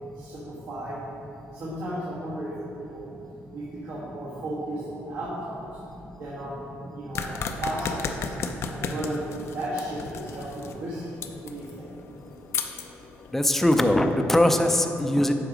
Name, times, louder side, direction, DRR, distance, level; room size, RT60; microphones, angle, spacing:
voice 1, 0.1-1.0 1.5-3.1 3.5-5.7 6.2-8.3 8.7-9.2 9.5-11.2 11.4-11.9, right 1 dB, 80° right, -9 dB, 1.5 m, -34 dB
sound 1, 7.2-13.3, left 5 dB, 65° left, 0.5 m, -35 dB
voice 2, 13.3-15.3, left 1 dB, 5° left, 5 dB, 0.5 m, -21 dB
8.0 x 4.7 x 5.0 m, 3.0 s
cardioid pair, 100°, 5 cm